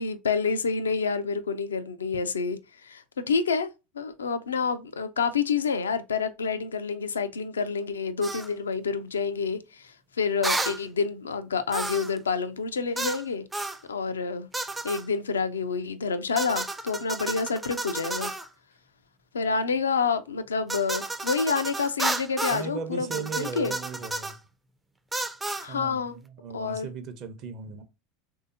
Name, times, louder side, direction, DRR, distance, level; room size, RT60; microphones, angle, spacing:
voice 1, 0.0-13.4 13.9-14.5 14.8-18.3 19.3-23.7 25.6-26.2 26.5-26.9, left 5 dB, 90° left, 0.3 m, -28 dB
sound 1, 8.2-8.5 10.4-10.8 11.7-12.2 13.0-13.2 13.5-13.8 14.5-15.0 16.4-18.5 20.7-22.7 23.1-24.4 25.1-25.7, right 2 dB, 10° right, 0.4 m, -31 dB
voice 2, 22.5-24.4 25.7-27.8, right 5 dB, 50° right, 0.6 m, -37 dB
3.3 x 2.7 x 2.6 m
hypercardioid pair, 85°, 0 cm